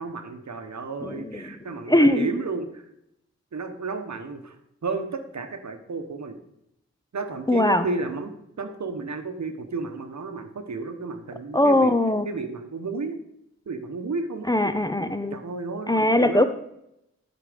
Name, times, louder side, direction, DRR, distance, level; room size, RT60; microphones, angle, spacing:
voice 1, 0.0-2.8 3.5-4.6 4.8-6.4 7.1-12.0 12.2-13.2 13.7-14.5 15.3-16.4, right 3 dB, 70° right, 7 dB, 1.1 m, -32 dB
voice 2, 1.0-1.4 1.9-2.3 7.5-7.9 11.5-12.2 14.5-15.4 15.9-16.4, left 1 dB, 15° left, 9 dB, 0.6 m, -20 dB
12.5 x 5.2 x 5.1 m, 0.79 s
wide cardioid pair, 105°, 29 cm